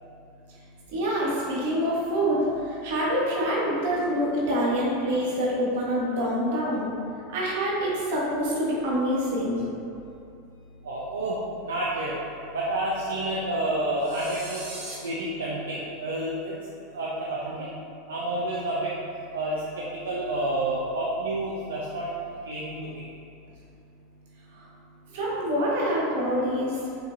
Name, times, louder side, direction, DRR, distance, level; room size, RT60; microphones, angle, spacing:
voice 1, 0.9-6.9 7.3-9.7 20.1-20.2 24.5-24.7 25.1-26.8, equal, 70° right, -5 dB, 1.2 m, -26 dB
voice 2, 10.8-12.1 12.5-14.6 15.0-16.5 16.9-17.7 18.1-18.9 19.3-19.6 20.0-22.1 22.5-23.0, right 1 dB, 85° right, -5 dB, 0.5 m, -29 dB
sound 1, 14.0-14.9, right 2 dB, 50° right, 1.3 m, -40 dB
5.7 x 2.6 x 2.6 m, 2.6 s
hypercardioid pair, 90°, 0 cm